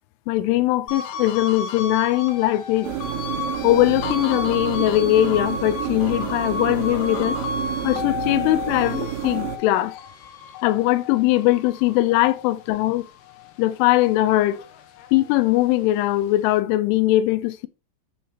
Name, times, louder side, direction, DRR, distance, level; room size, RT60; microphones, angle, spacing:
voice 1, 0.3-2.9 3.6-7.4 7.8-10.0 10.6-13.1 13.6-14.6 15.1-17.7, left 16 dB, 90° left, 3.2 m, -20 dB
sound 1, 0.9-13.5 13.9-15.6, left 4 dB, 70° left, 2.7 m, -33 dB
sound 2, 2.8-9.6, right 11 dB, 85° right, 3.6 m, -30 dB
10.5 x 6.5 x 2.9 m
omnidirectional pair, 5.5 m